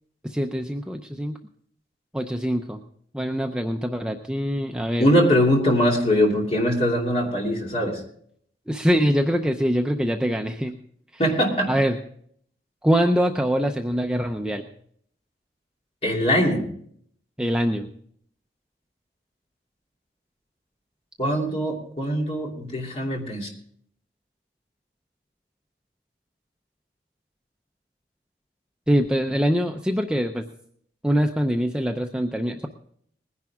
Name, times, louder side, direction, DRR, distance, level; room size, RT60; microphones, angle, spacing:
voice 1, 0.2-1.4 2.1-2.8 3.1-5.1 8.7-10.8 11.7-12.0 12.8-14.7 17.4-17.9 28.9-30.5 31.0-32.7, equal, 5° right, 4 dB, 0.5 m, -23 dB
voice 2, 5.0-8.0 11.2-11.7 16.0-16.7 21.2-23.5, equal, 35° left, -1 dB, 2.9 m, -22 dB
20.5 x 10.5 x 3.6 m, 0.64 s
head